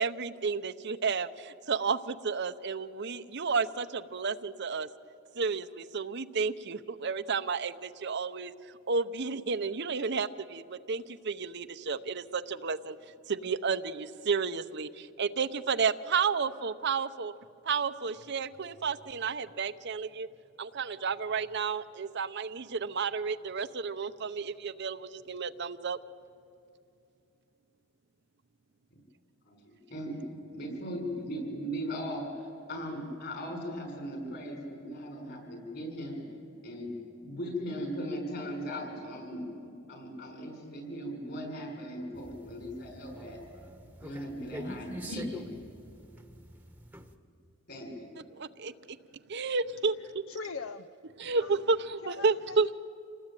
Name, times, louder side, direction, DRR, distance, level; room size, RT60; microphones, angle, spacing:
voice 1, 0.0-4.9 5.4-8.5 8.9-13.0 13.3-17.3 17.6-20.3 20.6-26.0 48.3-48.7 49.3-50.2 51.2-52.7, right 5 dB, 55° right, 11 dB, 0.7 m, -31 dB
voice 2, 29.5-36.3 36.6-36.9 37.2-43.4 44.0-45.5 47.7-48.1, equal, 50° left, 3 dB, 6.5 m, -38 dB
sound 1, 42.1-47.2, right 1 dB, 10° right, 1.1 m, -46 dB
voice 3, 50.3-50.9 51.4-51.6 52.0-52.7, left 4 dB, 70° left, 11 dB, 0.6 m, -41 dB
27.5 x 19.0 x 9.1 m, 2.7 s
head